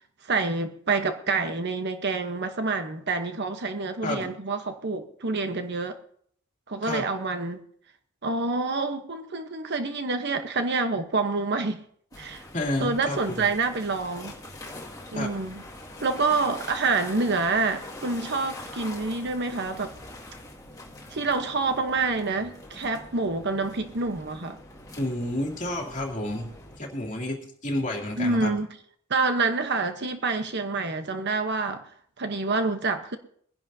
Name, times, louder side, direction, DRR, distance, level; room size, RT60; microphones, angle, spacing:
voice 1, 0.2-6.0 6.7-7.6 8.2-11.8 12.2-12.4 12.8-14.3 15.1-15.6 16.0-19.9 21.1-24.6 28.2-28.7 29.1-31.9 32.2-33.2, right 3 dB, 55° right, 1.0 m, -27 dB
sound 1, 12.1-26.8, left 1 dB, 20° left, 2.2 m, -44 dB
voice 2, 12.5-13.5 15.1-15.3 25.0-26.5 26.8-28.5, left 1 dB, 35° left, 2.9 m, -30 dB
22.5 x 10.5 x 2.8 m
head